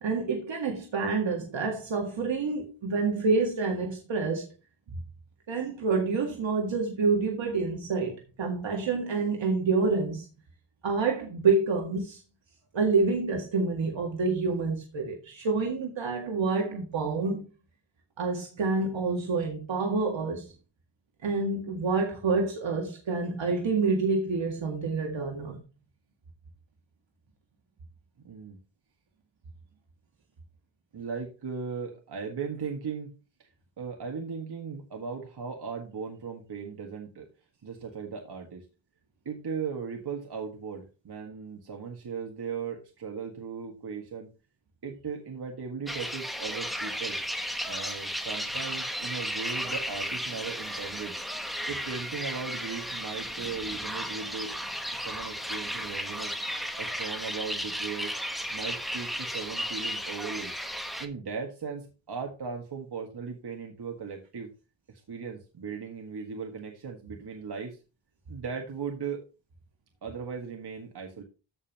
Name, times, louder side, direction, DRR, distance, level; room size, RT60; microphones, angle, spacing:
voice 1, 0.0-4.5 5.5-10.3 10.8-12.2 12.7-17.5 18.2-20.5 21.2-25.6, right 4 dB, 75° right, 2.0 m, -28 dB
voice 2, 28.2-28.6 30.9-33.1 33.4-33.5 33.8-37.3 37.6-38.7 39.3-44.3 44.8-47.2 47.7-51.1 51.7-54.5 54.9-56.4 56.8-58.1 58.5-60.5 61.0-64.5 64.9-67.8 68.3-69.2 70.0-71.2, right 6 dB, 60° right, 1.9 m, -37 dB
sound 1, 45.9-61.1, equal, ahead, 1.2 m, -34 dB
14.5 x 5.4 x 3.0 m
wide cardioid pair, 105°, 45 cm